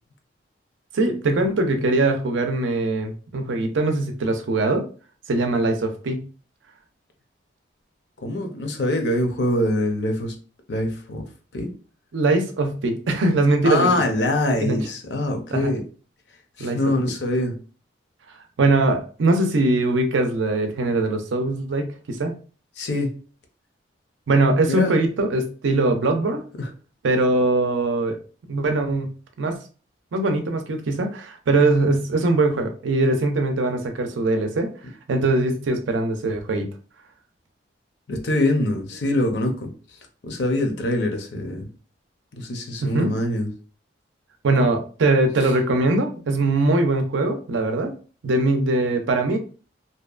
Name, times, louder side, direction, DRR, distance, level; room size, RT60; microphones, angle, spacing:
voice 1, 0.9-4.8 5.3-6.2 12.1-13.9 14.6-14.8 15.5-15.7 16.6-16.8 18.6-22.3 24.3-26.4 27.0-28.2 28.5-29.1 29.4-29.6 30.1-36.7 42.8-43.1 44.4-47.9 48.2-49.4, right 2 dB, 80° right, 6 dB, 0.5 m, -21 dB
voice 2, 8.2-10.3 10.7-11.2 11.5-11.7 13.6-15.8 16.6-17.6 22.8-23.1 24.7-25.0 26.6-26.7 38.1-39.7 40.2-41.7 42.3-43.5 45.4-45.5, left 1 dB, 65° left, 4 dB, 0.5 m, -24 dB
2.7 x 2.1 x 2.3 m, 0.38 s
head